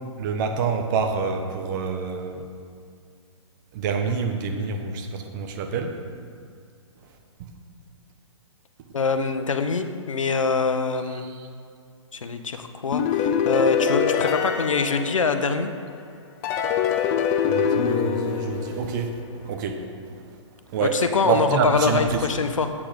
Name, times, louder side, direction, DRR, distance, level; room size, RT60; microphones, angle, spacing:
voice 1, 0.2-2.4 3.7-6.0 17.5-19.1 19.5-19.8 20.7-21.0 21.3-22.0, right 5 dB, 40° right, 4 dB, 1.1 m, -26 dB
voice 2, 8.9-11.3 12.1-15.7 20.8-22.7, left 4 dB, 90° left, 8 dB, 0.9 m, -24 dB
sound 1, 12.9-15.8 16.4-19.3, left 7 dB, 30° left, 0.7 m, -24 dB
8.7 x 8.5 x 5.2 m, 2.3 s
hypercardioid pair, 140°, 16 cm